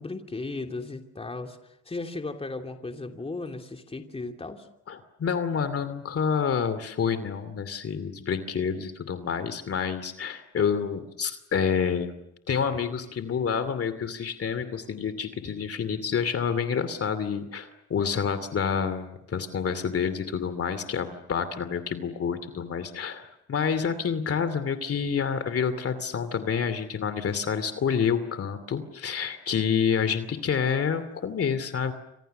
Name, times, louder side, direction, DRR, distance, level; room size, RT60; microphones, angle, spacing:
voice 1, 0.0-1.6 1.8-4.7, left 3 dB, 20° left, 4 dB, 2.9 m, -35 dB
voice 2, 4.9-12.2 12.5-31.9, left 6 dB, 50° left, 11 dB, 2.6 m, -28 dB
29.5 x 26.5 x 6.7 m, 0.82 s
cardioid pair, 90°, 30 cm